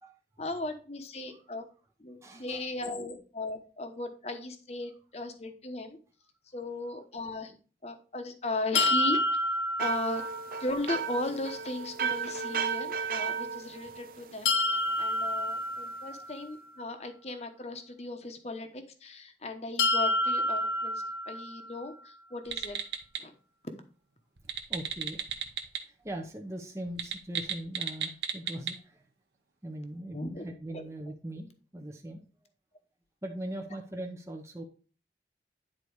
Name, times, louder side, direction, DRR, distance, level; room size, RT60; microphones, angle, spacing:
voice 1, 0.4-1.7 2.0-6.0 6.5-7.5 7.8-9.2 9.8-10.3 10.6-22.8 23.2-23.3 30.1-30.9, left 2 dB, 35° left, 7 dB, 1.0 m, -37 dB
voice 2, 2.2-2.7 9.7-9.8 24.4-25.3 25.9-29.1 29.6-32.2 33.2-34.6, right 1 dB, 15° right, 1 dB, 0.8 m, -40 dB
sound 1, 8.7-10.7 14.4-16.5 19.8-21.8, left 2 dB, 90° left, 0.6 m, -29 dB
sound 2, 9.8-14.7, right 6 dB, 50° right, 0.5 m, -34 dB
sound 3, 22.4-23.2 24.4-25.8 26.1-26.2 26.9-28.7, right 7 dB, 75° right, 1.1 m, -34 dB
10.0 x 4.1 x 4.7 m, 0.37 s
head